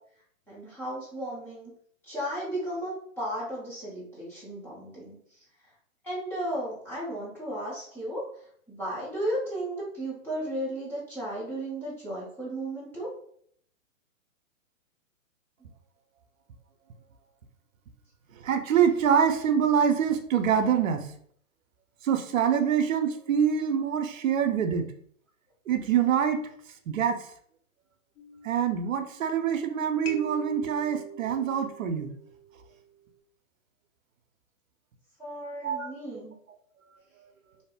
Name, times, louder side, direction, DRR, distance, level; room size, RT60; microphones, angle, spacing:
voice 1, 0.5-1.7 2.0-5.4 6.0-8.3 8.7-13.1 15.6-15.7 35.2-36.3, right 1 dB, 5° left, -9 dB, 0.5 m, -34 dB
voice 2, 18.4-21.1 22.0-24.9 25.7-26.4 26.9-27.3 28.4-32.1 35.6-36.2, right 8 dB, 70° right, 6 dB, 0.6 m, -25 dB
sound 1, 28.2-29.6 30.1-32.7, right 3 dB, 60° left, 0.9 m, -43 dB
2.7 x 2.0 x 3.5 m, 0.63 s
hypercardioid pair, 135°, 41 cm